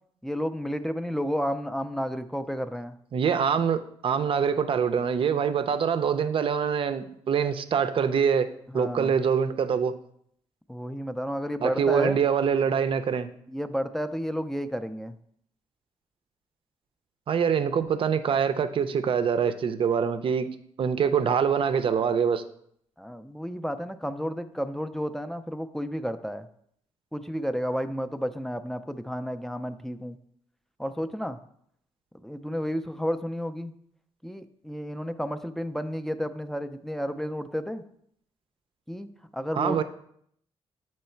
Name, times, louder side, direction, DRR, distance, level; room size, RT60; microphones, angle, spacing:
voice 1, 0.2-3.0 8.7-9.1 10.7-12.2 13.5-15.2 23.0-26.5 27.1-30.2 30.8-31.4 32.2-33.7 34.2-37.8 38.9-39.8, equal, 5° left, 9 dB, 0.4 m, -31 dB
voice 2, 3.1-8.5 8.7-9.9 11.6-13.3 17.3-20.5 20.8-22.4 39.6-39.8, right 7 dB, 55° right, 10 dB, 0.5 m, -24 dB
7.9 x 3.1 x 4.4 m, 0.68 s
cardioid pair, 90°, 11 cm